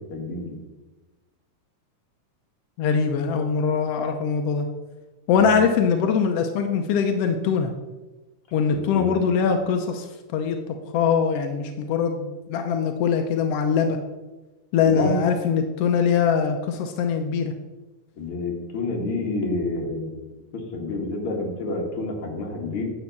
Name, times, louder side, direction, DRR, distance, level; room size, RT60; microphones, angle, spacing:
voice 1, 0.1-0.6 5.3-5.6 8.7-9.2 14.8-15.2 18.2-22.9, left 2 dB, 50° left, 0 dB, 2.3 m, -29 dB
voice 2, 2.8-4.7 5.3-7.7 8.5-10.6 10.9-14.0 14.7-17.5, left 6 dB, 80° left, 5 dB, 1.4 m, -22 dB
9.8 x 5.2 x 7.0 m, 1.2 s
omnidirectional pair, 3.6 m